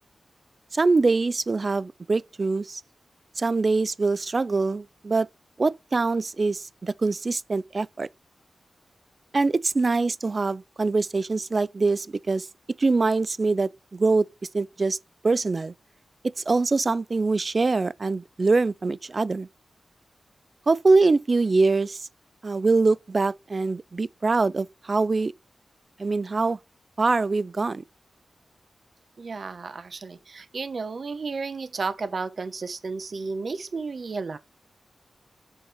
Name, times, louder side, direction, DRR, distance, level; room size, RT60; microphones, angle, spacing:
voice 1, 0.7-2.8 3.4-5.3 5.6-8.1 9.3-12.5 12.8-14.3 14.5-15.0 15.2-15.7 16.2-19.5 20.7-22.1 22.4-25.3 26.0-26.6 27.0-27.8, right 3 dB, 40° right, 0.4 m, -23 dB
voice 2, 29.2-34.4, right 4 dB, 55° right, 1.0 m, -33 dB
7.0 x 5.6 x 4.4 m
wide cardioid pair, 110°, 0 cm